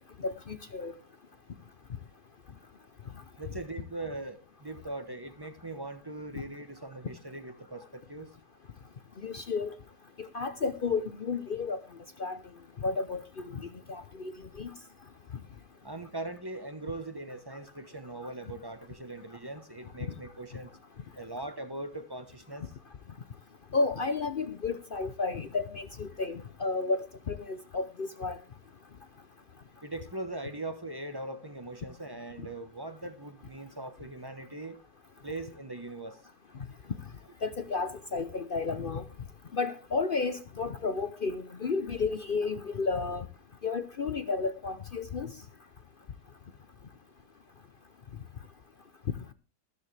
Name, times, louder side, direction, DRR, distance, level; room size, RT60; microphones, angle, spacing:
voice 1, 0.2-0.9 9.2-9.7 10.3-11.8 12.2-12.4 12.8-14.3 14.6-14.7 23.7-28.4 37.4-39.0 39.5-43.3 43.6-45.3, left 4 dB, 50° left, 0.6 m, -32 dB
voice 2, 3.4-8.3 15.8-20.7 21.1-22.7 29.8-34.8 35.2-36.2, right 2 dB, 15° right, 0.9 m, -40 dB
13.5 x 13.5 x 3.3 m
omnidirectional pair, 1.8 m